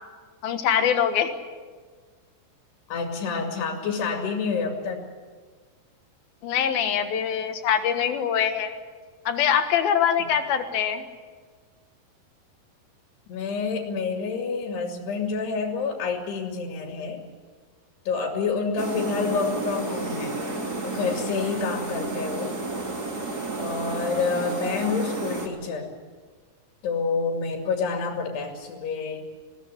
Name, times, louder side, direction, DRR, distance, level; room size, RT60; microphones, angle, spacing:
voice 1, 0.4-1.3 6.4-8.7 9.3-11.0 24.8-24.9, left 8 dB, 70° left, 7 dB, 3.2 m, -23 dB
voice 2, 2.9-5.0 10.2-10.3 13.3-17.2 18.1-20.4 20.8-22.5 23.6-25.9 26.8-29.2, left 5 dB, 90° left, 2 dB, 4.5 m, -28 dB
sound 1, 18.8-25.5, right 2 dB, 25° right, 2.6 m, -31 dB
20.5 x 17.5 x 10.0 m, 1.5 s
omnidirectional pair, 4.6 m